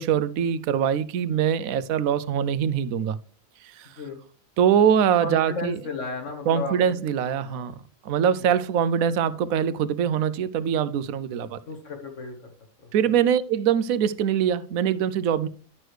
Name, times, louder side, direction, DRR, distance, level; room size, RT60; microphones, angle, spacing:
voice 1, 0.0-3.2 3.8-3.9 4.6-5.8 6.5-7.7 8.0-11.6 12.9-15.5, right 8 dB, 85° right, 1.0 m, -23 dB
voice 2, 5.2-6.9 7.3-7.7 8.4-8.5 11.7-12.5 12.8-13.1, left 4 dB, 65° left, 1.8 m, -35 dB
11.0 x 6.2 x 3.2 m
omnidirectional pair, 1.4 m